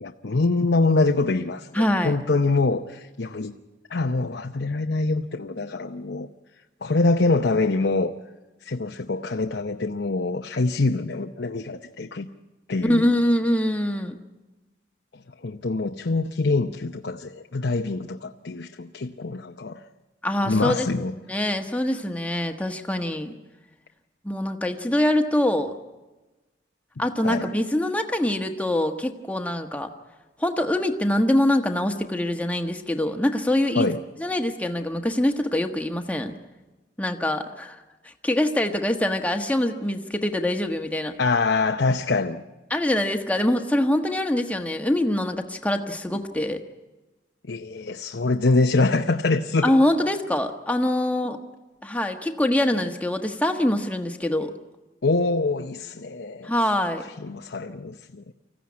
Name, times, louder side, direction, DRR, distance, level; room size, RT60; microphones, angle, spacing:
voice 1, 0.0-3.6 3.9-6.3 6.8-8.1 8.6-12.3 12.7-13.0 15.4-19.8 20.4-21.1 27.2-27.5 33.7-34.0 41.2-42.4 47.5-49.7 55.0-56.5 57.2-58.2, left 3 dB, 70° left, 0.8 m, -24 dB
voice 2, 1.7-2.2 12.8-14.2 20.2-20.9 21.3-23.3 24.2-25.7 27.0-29.9 30.4-33.9 34.2-36.3 37.0-37.8 38.0-41.2 42.7-46.6 49.6-51.4 51.8-54.5 56.4-57.0, left 1 dB, 10° left, 1.3 m, -24 dB
25.0 x 15.0 x 9.6 m
head